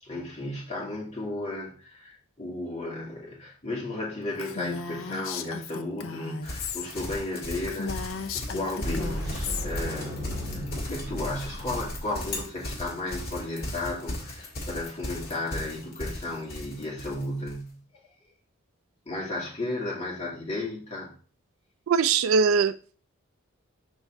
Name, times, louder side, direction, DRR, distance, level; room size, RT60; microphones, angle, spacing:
voice 1, 0.0-17.8 19.1-21.1, left 2 dB, 30° left, 2.3 m, -34 dB
Female speech woman speaking, 4.4-6.9 7.2-7.3 7.6-9.7, left 5 dB, 75° left, 0.6 m, -35 dB
Livestock farm animals working animals, 6.4-17.6, left 1 dB, 45° left, 2.0 m, -37 dB
sound 1, 8.8-12.0, equal, 45° right, 2.4 m, -34 dB
voice 2, 21.9-23.0, right 5 dB, 80° right, 0.3 m, -22 dB
6.3 x 5.5 x 3.5 m
head